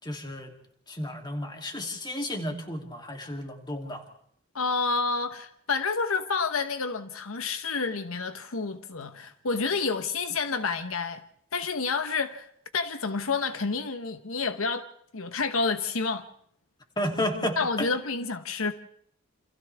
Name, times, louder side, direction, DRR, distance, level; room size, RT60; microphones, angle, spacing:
voice 1, 0.0-0.5 0.9-4.0 17.0-17.9, left 1 dB, 20° left, 2.9 m, -32 dB
voice 2, 4.5-11.2 11.5-12.5 12.7-14.9 15.1-16.3 17.6-18.7, left 4 dB, 75° left, 1.1 m, -29 dB
28.5 x 27.0 x 3.5 m
head